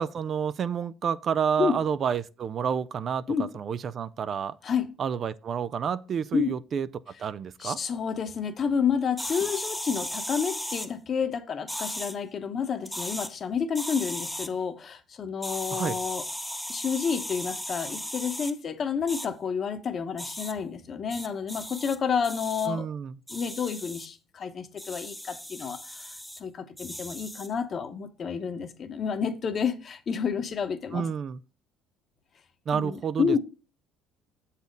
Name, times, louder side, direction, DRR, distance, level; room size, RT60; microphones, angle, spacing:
voice 1, 0.0-4.6 5.0-6.9 7.2-7.8 15.7-16.0 22.7-23.2 30.9-31.4 32.7-33.4, right 7 dB, 45° right, 0.4 m, -29 dB
voice 2, 7.6-16.2 16.7-22.9 23.3-26.1 26.4-31.1 32.7-33.4, left 6 dB, 40° left, 1.0 m, -30 dB
sound 1, 9.2-10.9 11.7-12.1 12.8-13.3 13.7-14.5 15.4-18.5 19.1-19.3 20.2-20.5 21.1-22.0 22.2-22.7 23.3-24.1 24.8-26.4 26.8-27.5, left 1 dB, ahead, 0.7 m, -36 dB
6.9 x 4.2 x 5.2 m
cardioid pair, 100°, 0 cm